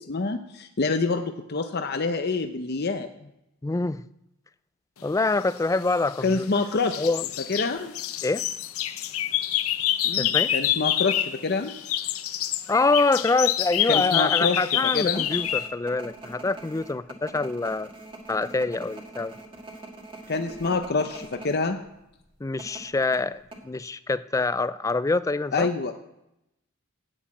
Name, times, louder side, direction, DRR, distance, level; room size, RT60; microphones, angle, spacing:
voice 1, 0.0-3.3 6.2-7.1 7.5-7.9 10.0-11.7 13.9-15.2 20.3-21.8 25.5-25.9, left 3 dB, 50° left, 7 dB, 0.7 m, -27 dB
voice 2, 3.6-4.0 5.0-6.5 7.0-7.2 8.2-8.4 10.2-10.5 12.7-17.9 18.3-19.3 22.4-25.7, left 3 dB, 15° left, 15 dB, 0.3 m, -25 dB
sound 1, 5.8-6.6 6.9-11.4 11.7-15.7, left 12 dB, 85° left, 0.7 m, -27 dB
sound 2, 14.9-21.6 21.9-22.0 22.6-23.6, right 2 dB, 25° right, 1.6 m, -43 dB
9.9 x 8.0 x 8.4 m, 0.86 s
head